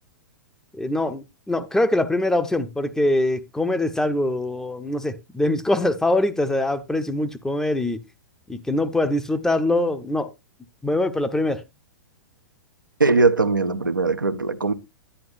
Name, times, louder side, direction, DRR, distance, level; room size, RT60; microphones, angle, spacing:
voice 1, 0.7-8.0 8.5-10.3 10.8-11.6, left 1 dB, 5° left, 0.6 m, -23 dB
voice 2, 13.0-14.7, right 3 dB, 90° right, 0.7 m, -20 dB
9.9 x 9.3 x 2.5 m
figure-of-eight pair, 105°, 10 cm